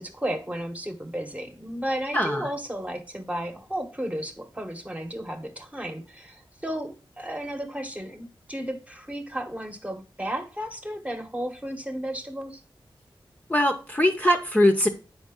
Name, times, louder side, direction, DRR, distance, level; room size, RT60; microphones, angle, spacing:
voice 1, 0.0-12.6, equal, 15° right, 1.2 m, -33 dB
voice 2, 2.1-2.5 13.5-14.9, left 1 dB, 15° left, 0.8 m, -21 dB
8.6 x 5.2 x 3.7 m
wide cardioid pair, 110°, 9 cm